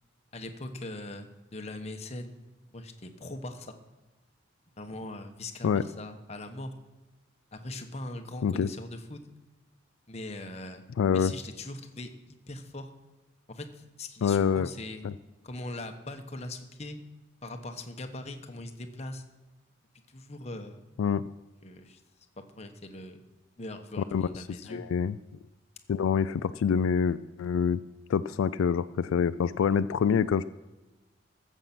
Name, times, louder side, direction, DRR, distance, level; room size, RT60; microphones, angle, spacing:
voice 1, 0.3-2.4 2.7-3.8 4.8-6.7 7.5-9.2 10.1-10.8 11.1-12.9 13.5-15.1 15.4-17.0 17.4-19.2 20.1-20.9 21.6-22.0 22.5-23.2 23.6-24.8, left 2 dB, 35° left, 6 dB, 1.0 m, -41 dB
voice 2, 11.0-11.3 14.2-14.7 15.0-15.1 21.0-21.2 24.1-24.3 24.7-25.1 25.9-27.8 28.1-30.4, left 7 dB, 85° left, 14 dB, 0.3 m, -26 dB
14.5 x 7.3 x 5.9 m, 1.1 s
head